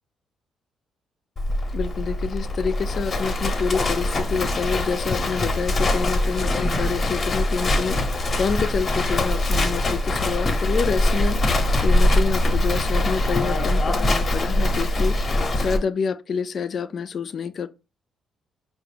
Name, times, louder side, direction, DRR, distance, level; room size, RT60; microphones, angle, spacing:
Livestock farm animals working animals, 1.4-15.8, left 1 dB, 35° left, 0.9 m, -23 dB
voice 1, 1.7-17.7, left 6 dB, 50° left, 0.4 m, -28 dB
4.7 x 2.5 x 3.3 m
cardioid pair, 90°, 0 cm